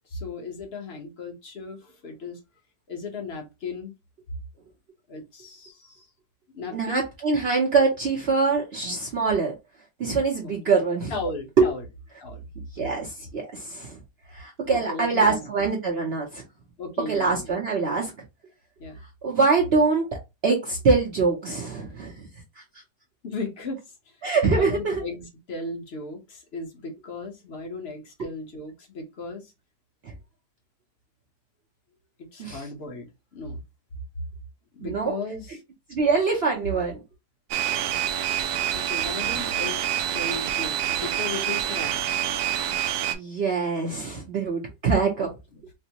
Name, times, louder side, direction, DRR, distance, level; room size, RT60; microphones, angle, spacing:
voice 1, 0.0-2.4 2.9-3.9 5.1-6.1 6.5-7.0 10.4-10.5 11.1-11.8 12.2-12.4 14.7-15.7 16.8-17.5 18.8-19.0 23.2-23.8 24.4-29.5 32.2-33.6 34.7-35.6 38.7-41.9 45.2-45.6, left 3 dB, 45° left, 0.9 m, -36 dB
voice 2, 6.7-9.6 10.0-11.1 11.6-11.7 12.7-14.0 14.3-16.4 17.1-18.1 19.2-20.1 20.4-22.3 24.2-25.0 30.0-30.1 32.4-32.6 34.8-35.2 35.9-37.0 43.1-45.3, right 4 dB, 55° right, 0.7 m, -24 dB
sound 1, 37.5-43.2, right 11 dB, 75° right, 1.0 m, -27 dB
4.4 x 2.0 x 2.8 m
omnidirectional pair, 1.8 m